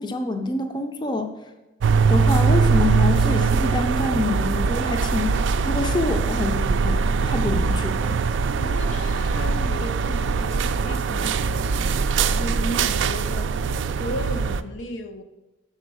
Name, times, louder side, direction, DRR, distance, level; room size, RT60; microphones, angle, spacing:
voice 1, 0.0-1.3 2.1-5.3 5.6-8.2, left 2 dB, 25° left, 0.5 m, -26 dB
sound 1, 1.8-14.6, right 5 dB, 75° right, 0.3 m, -22 dB
voice 2, 8.6-13.7 14.0-15.2, left 1 dB, 85° left, 0.7 m, -35 dB
6.9 x 4.3 x 6.1 m
head